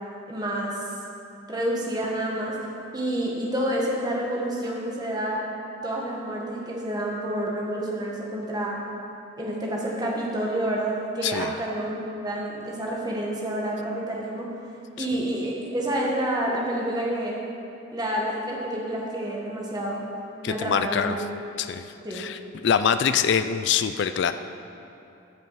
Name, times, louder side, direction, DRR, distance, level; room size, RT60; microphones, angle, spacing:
voice 1, 0.3-0.8 1.5-2.6 2.9-5.4 5.8-8.8 9.4-14.5 15.0-17.4 17.9-20.0 20.5-21.2 22.0-22.3, right 1 dB, 20° right, -3 dB, 1.4 m, -28 dB
voice 2, 20.4-21.2 21.6-21.8 22.1-24.3, left 7 dB, 55° left, 10 dB, 0.3 m, -24 dB
14.0 x 7.2 x 4.7 m, 2.7 s
head